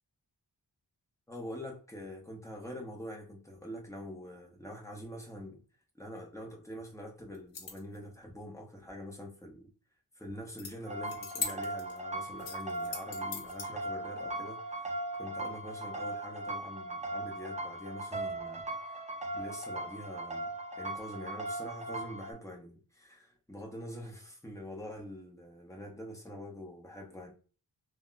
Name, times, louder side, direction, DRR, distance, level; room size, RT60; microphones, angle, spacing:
voice 1, 1.3-5.6 5.9-9.7 10.2-14.9 15.2-19.0 19.3-20.5 20.8-27.3, equal, 5° left, 0.9 m, -45 dB
sound 1, 7.3-8.0 10.6-10.7 11.0-12.0 12.4-13.7, left 5 dB, 90° left, 0.7 m, -39 dB
sound 2, 10.9-22.3, right 1 dB, 15° right, 0.5 m, -38 dB
3.4 x 2.2 x 2.5 m
wide cardioid pair, 95°, 43 cm